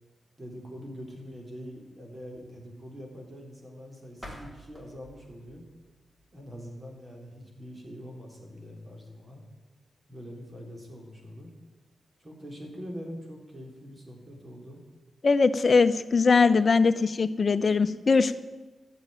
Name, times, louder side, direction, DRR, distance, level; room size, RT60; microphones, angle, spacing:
voice 1, 0.4-5.6 6.3-9.4 10.1-11.5 12.2-14.8, equal, 30° right, 0 dB, 3.8 m, -43 dB
sound 1, 4.1-7.0, equal, 10° right, 3.8 m, -49 dB
voice 2, 15.2-18.4, left 4 dB, 40° left, 11 dB, 0.7 m, -21 dB
14.5 x 7.4 x 9.0 m, 1.2 s
wide cardioid pair, 105°, 0 cm